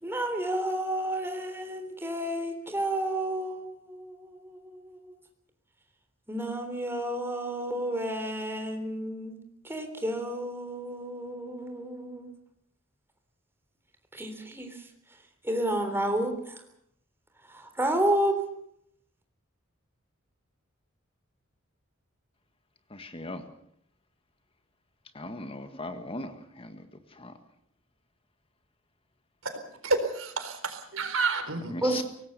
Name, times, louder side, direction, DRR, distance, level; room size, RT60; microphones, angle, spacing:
voice 1, 0.0-5.2 6.3-9.3 9.6-12.3 14.1-14.7 15.4-16.6 17.5-18.4 31.8-32.0, right 1 dB, 10° right, 3.5 m, -31 dB
voice 2, 22.9-23.4 25.2-26.3 26.6-26.8 27.2-27.3 31.7-32.0, left 2 dB, 25° left, 1.7 m, -38 dB
voice 3, 29.4-31.7, right 3 dB, 75° right, 4.1 m, -30 dB
24.5 x 18.5 x 6.8 m
head